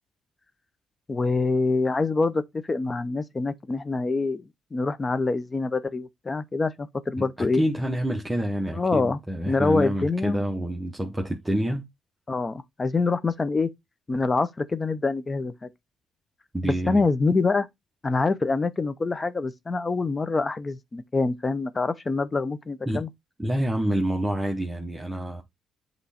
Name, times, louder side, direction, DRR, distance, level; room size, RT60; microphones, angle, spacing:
voice 1, 1.1-2.4 2.7-4.4 4.7-7.6 8.7-9.2 9.5-10.4 12.3-13.7 14.1-15.7 16.6-17.7 18.0-23.1, left 3 dB, 30° left, 0.7 m, -25 dB
voice 2, 7.2-11.9 16.5-17.0 22.9-23.0 23.4-25.4, right 1 dB, 10° right, 1.0 m, -27 dB
7.9 x 3.1 x 4.2 m
cardioid pair, 90°, 0 cm